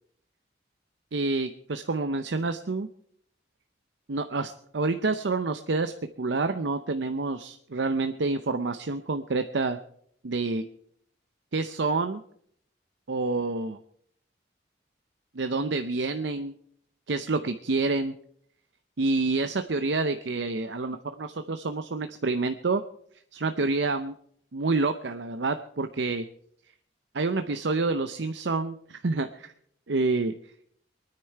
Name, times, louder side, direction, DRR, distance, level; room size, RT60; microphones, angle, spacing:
voice 1, 1.1-2.9 4.1-9.8 10.2-10.6 11.5-12.2 13.1-13.8 15.3-16.5 17.1-18.1 19.0-22.8 23.3-24.1 24.5-26.2 27.1-29.5 29.9-30.3, right 3 dB, 70° right, 8 dB, 0.7 m, -28 dB
23.0 x 9.9 x 4.6 m, 0.66 s
head